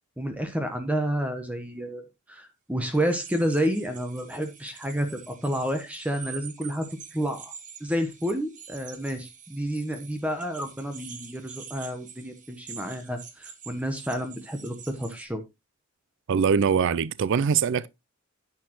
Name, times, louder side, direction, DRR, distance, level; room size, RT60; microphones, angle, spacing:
voice 1, 0.2-2.0 2.3-6.9 7.1-7.5 7.8-15.4, equal, 5° right, 1.1 m, -30 dB
sound 1, 2.9-15.3, right 7 dB, 35° right, 1.5 m, -46 dB
voice 2, 16.3-17.9, right 6 dB, 60° right, 0.4 m, -22 dB
10.0 x 8.4 x 3.0 m
head